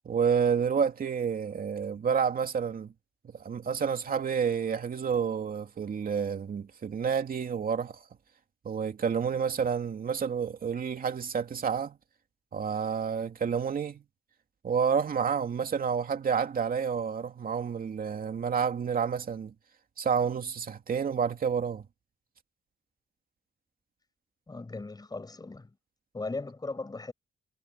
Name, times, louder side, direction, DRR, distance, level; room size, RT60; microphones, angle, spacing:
voice 1, 0.0-2.9 3.2-8.0 8.6-12.0 12.5-14.0 14.6-19.5 20.0-21.8, right 6 dB, 45° right, 2.7 m, -29 dB
voice 2, 24.5-25.7 26.1-27.1, left 3 dB, 20° left, 7.6 m, -38 dB
wide cardioid pair, 150°, 20 cm